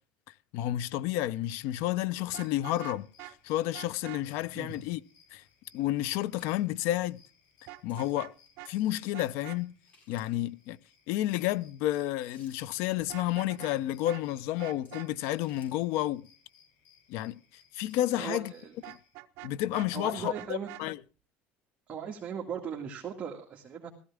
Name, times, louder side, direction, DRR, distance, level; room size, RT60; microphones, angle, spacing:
voice 1, 0.5-5.0 5.3-5.4 5.7-7.2 7.8-8.3 8.7-9.7 10.1-10.8 11.1-16.3 17.1-17.4 17.7-18.5 18.9-19.0 19.4-21.0, left 14 dB, 65° left, 0.7 m, -31 dB
sound 1, 2.2-19.1, left 6 dB, 85° left, 6.9 m, -64 dB
Vehicle horn car horn honking, 2.3-3.3 3.7-4.2 7.7-8.3 8.6-8.7 9.1-9.6 13.0-13.8 14.0-14.2 14.6-15.1 18.8-19.9 20.3-20.8, right 18 dB, 60° right, 0.9 m, -45 dB
sound 2, 5.0-18.1, left 3 dB, 30° left, 6.7 m, -65 dB
voice 2, 18.1-18.7 19.9-20.7 21.9-23.9, right 7 dB, 25° right, 2.1 m, -38 dB
17.0 x 14.5 x 3.6 m
cardioid pair, 160°, 5 cm